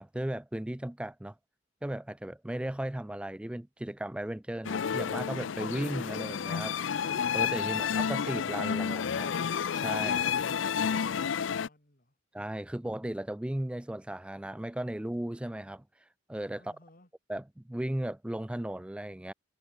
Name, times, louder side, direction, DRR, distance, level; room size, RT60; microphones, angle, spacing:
voice 1, 0.0-1.3 1.8-9.3 9.7-10.3 12.3-15.8 16.3-16.6 17.3-19.3, right 1 dB, 5° right, 0.3 m, -36 dB
sound 1, 4.6-11.7, left 7 dB, 70° left, 0.5 m, -30 dB
voice 2, 10.2-12.2 16.5-17.1, left 1 dB, 45° left, 5.6 m, -62 dB
head